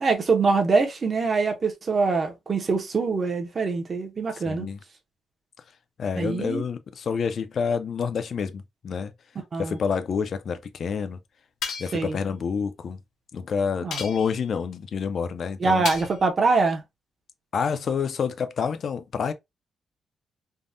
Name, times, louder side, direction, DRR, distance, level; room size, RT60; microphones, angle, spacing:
voice 1, 0.0-4.7 6.2-6.6 9.5-9.8 11.9-12.2 13.8-14.0 15.6-16.8, right 4 dB, 30° right, 0.6 m, -24 dB
voice 2, 4.3-4.8 6.0-9.1 9.6-11.2 11.8-13.0 13.3-15.9 17.5-19.3, left 6 dB, 45° left, 0.3 m, -28 dB
sound 1, 11.6-12.1 13.9-14.5 15.9-16.3, left 6 dB, 80° left, 0.7 m, -33 dB
3.5 x 2.1 x 2.5 m
wide cardioid pair, 175°, 0 cm